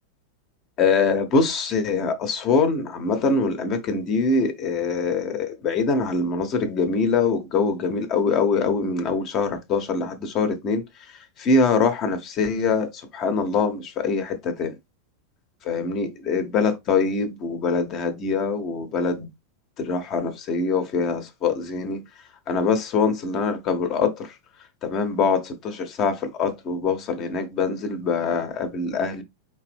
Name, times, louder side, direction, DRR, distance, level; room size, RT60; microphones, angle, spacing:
voice 1, 0.8-10.9 11.4-14.7 15.6-19.3 19.8-22.0 22.5-24.3 24.8-29.2, left 4 dB, 35° left, 1.1 m, -23 dB
5.3 x 2.9 x 3.3 m
figure-of-eight pair, 90°, 0 cm